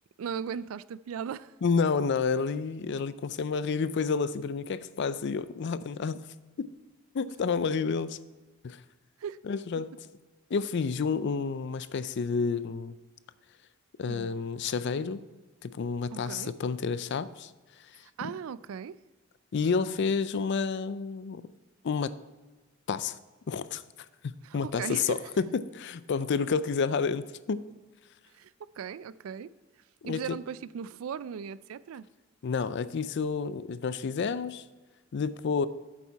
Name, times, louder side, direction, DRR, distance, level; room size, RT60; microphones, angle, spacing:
voice 1, 0.2-1.5 9.2-9.4 14.1-14.3 16.1-16.5 18.0-19.0 24.4-25.3 28.3-28.5 28.8-29.5 30.0-32.1, right 7 dB, 85° right, 0.3 m, -38 dB
voice 2, 1.6-6.2 6.6-6.7 7.1-8.2 8.6-8.8 9.4-9.9 10.5-13.0 14.0-15.2 15.6-17.5 19.5-21.4 21.8-22.2 22.9-23.2 23.5-23.8 24.2-27.6 30.1-30.4 32.4-34.6 35.1-35.7, left 5 dB, 55° left, 0.4 m, -30 dB
8.4 x 7.2 x 4.6 m
head